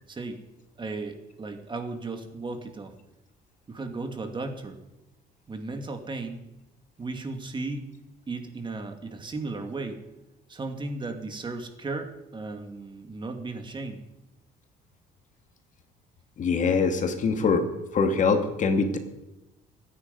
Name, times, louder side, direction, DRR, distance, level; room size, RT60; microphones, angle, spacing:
voice 1, 0.1-0.4 0.8-2.9 3.7-4.8 5.5-6.4 7.0-7.9 8.3-10.0 10.5-14.0, right 3 dB, 30° right, 6 dB, 2.4 m, -35 dB
voice 2, 16.4-17.6 17.9-19.0, left 4 dB, 50° left, 6 dB, 2.3 m, -23 dB
24.0 x 10.0 x 5.4 m, 0.99 s
cardioid pair, 110°, 17 cm